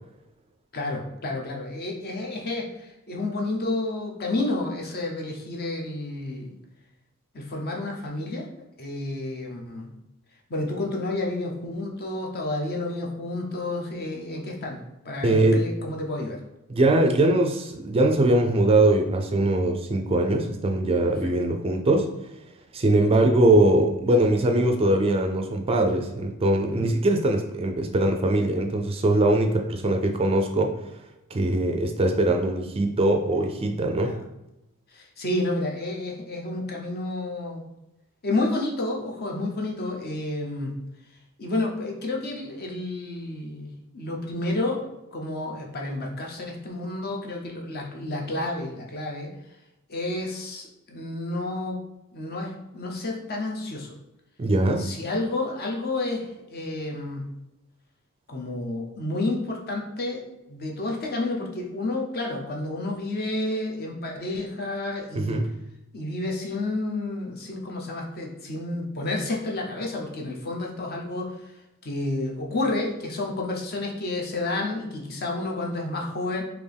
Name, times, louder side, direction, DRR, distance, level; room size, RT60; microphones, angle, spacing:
voice 1, 0.7-6.5 7.3-8.5 8.8-9.9 10.5-16.4 21.1-21.3 26.7-26.9 34.0-34.2 34.9-37.6 38.2-40.8 41.4-44.9 45.1-49.3 49.9-51.8 52.1-53.9 54.8-57.3 58.3-60.2 60.5-65.4 65.9-71.3 71.8-76.4, left 2 dB, 45° left, 0 dB, 0.8 m, -30 dB
voice 2, 15.2-15.7 16.7-22.1 22.7-30.8 31.3-34.2 54.4-54.9 65.1-65.5, right 1 dB, 25° right, 4 dB, 0.4 m, -21 dB
4.2 x 2.9 x 3.5 m, 0.93 s
head